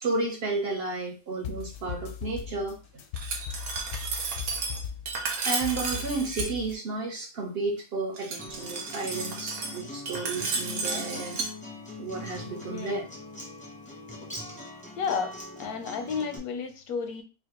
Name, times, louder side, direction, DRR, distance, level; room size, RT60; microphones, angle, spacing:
voice 1, 0.0-2.8 5.4-11.4 12.0-13.0, right 3 dB, 50° right, 1 dB, 0.8 m, -32 dB
sound 1, 1.4-6.8, left 8 dB, 65° left, 0.8 m, -38 dB
Glass, 3.1-6.5 8.2-11.5, right 4 dB, 80° right, 1.3 m, -33 dB
Acoustic guitar, 8.4-16.4, left 2 dB, 10° left, 0.6 m, -42 dB
voice 2, 15.0-17.2, left 6 dB, 85° left, 6 dB, 1.2 m, -32 dB
4.8 x 2.1 x 3.0 m, 0.33 s
omnidirectional pair, 1.5 m